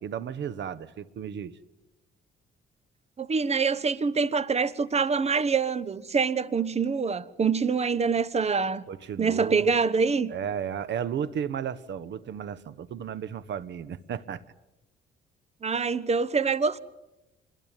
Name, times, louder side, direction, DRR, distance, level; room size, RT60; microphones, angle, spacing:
voice 1, 0.0-1.6 8.9-9.7 10.3-14.4, right 8 dB, 65° right, 1.2 m, -34 dB
voice 2, 3.2-8.9 9.2-10.3 15.6-16.8, right 5 dB, 30° right, 1.1 m, -25 dB
26.5 x 22.0 x 9.0 m
cardioid pair, 90°, 20 cm